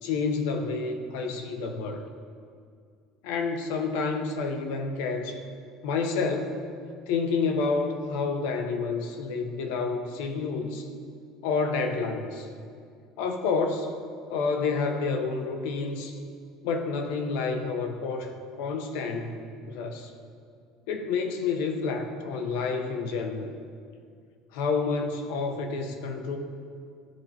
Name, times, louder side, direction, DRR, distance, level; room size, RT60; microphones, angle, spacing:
voice 1, 0.0-2.0 3.2-5.4 5.8-6.6 7.1-10.9 11.4-12.5 13.2-13.9 14.3-16.2 16.6-18.3 18.6-20.1 20.9-23.5 24.5-26.4, left 4 dB, 80° left, 5 dB, 0.7 m, -29 dB
12.5 x 4.3 x 2.8 m, 2.2 s
cardioid pair, 155°, 0 cm